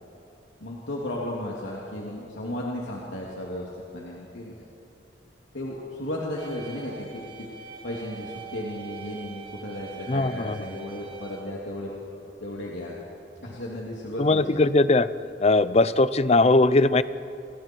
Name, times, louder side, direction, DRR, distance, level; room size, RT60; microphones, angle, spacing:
voice 1, 0.6-4.6 5.5-13.0 13.4-14.6, left 1 dB, 85° left, -4 dB, 2.9 m, -35 dB
sound 1, 6.4-11.4, right 7 dB, 30° right, 3.1 m, -44 dB
voice 2, 10.1-10.7 14.2-15.1 15.4-17.0, left 2 dB, 35° left, 15 dB, 0.6 m, -20 dB
29.5 x 22.0 x 4.7 m, 2.6 s
head